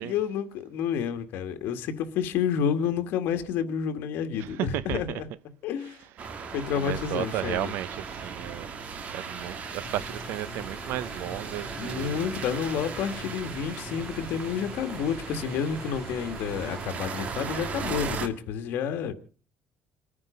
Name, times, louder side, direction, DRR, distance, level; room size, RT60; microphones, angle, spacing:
voice 1, 0.0-5.3 5.6-6.0 6.5-7.7 11.8-19.1, left 8 dB, 75° left, 2.0 m, -30 dB
voice 2, 4.4-5.2 6.8-8.7 9.1-12.8, right 13 dB, 80° right, 0.7 m, -34 dB
sound 1, 6.2-18.3, right 5 dB, 40° right, 1.8 m, -37 dB
sound 2, 9.8-16.9, equal, ahead, 4.8 m, -43 dB
28.5 x 9.7 x 5.3 m
cardioid pair, 165°, 4 cm